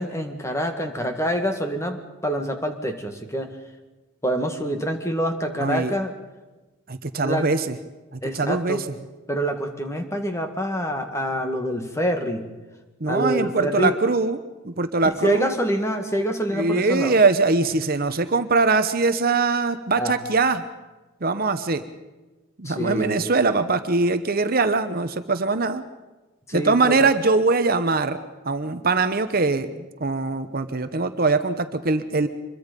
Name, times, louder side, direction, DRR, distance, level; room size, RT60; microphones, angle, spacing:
voice 1, 0.0-3.5 4.2-6.1 7.2-7.5 8.2-8.8 9.3-12.5 13.1-14.0 15.2-17.2 20.0-20.2 22.7-23.3 26.5-27.1, equal, 15° left, 6 dB, 1.8 m, -26 dB
voice 2, 5.6-6.0 6.9-7.7 8.3-8.8 13.0-14.4 14.6-15.5 16.5-20.6 21.2-21.8 22.6-25.8 26.5-28.2 28.4-32.3, right 3 dB, 45° right, 10 dB, 0.9 m, -22 dB
25.0 x 22.0 x 5.3 m, 1.1 s
head